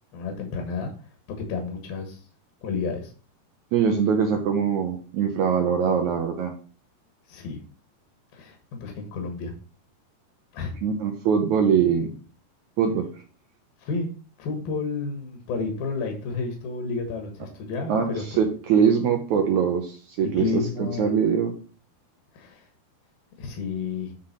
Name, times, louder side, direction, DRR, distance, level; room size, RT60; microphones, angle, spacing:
voice 1, 0.1-0.9 1.4-2.2 2.6-3.1 7.3-7.6 8.3-9.5 10.5-10.7 13.8-14.1 14.4-18.2 20.2-21.2 22.3-22.6 23.4-24.1, left 4 dB, 70° left, 3 dB, 3.1 m, -31 dB
voice 2, 3.7-6.5 10.8-12.1 12.8-13.1 17.9-21.5, right 7 dB, 75° right, 4 dB, 1.7 m, -22 dB
10.0 x 3.8 x 5.8 m, 0.39 s
omnidirectional pair, 4.5 m